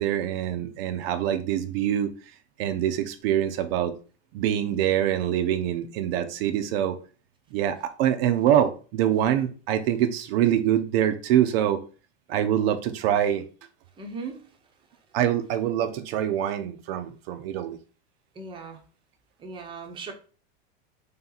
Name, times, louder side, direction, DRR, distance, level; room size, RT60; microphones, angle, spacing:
voice 1, 0.0-2.1 2.6-3.9 4.3-7.0 7.5-11.8 12.3-13.4 15.1-17.8, right 10 dB, 60° right, 0.5 m, -24 dB
voice 2, 14.0-14.4 18.4-18.8 19.4-20.1, right 4 dB, 15° right, 0.6 m, -37 dB
3.4 x 2.9 x 3.8 m
supercardioid pair, 140°, 34 cm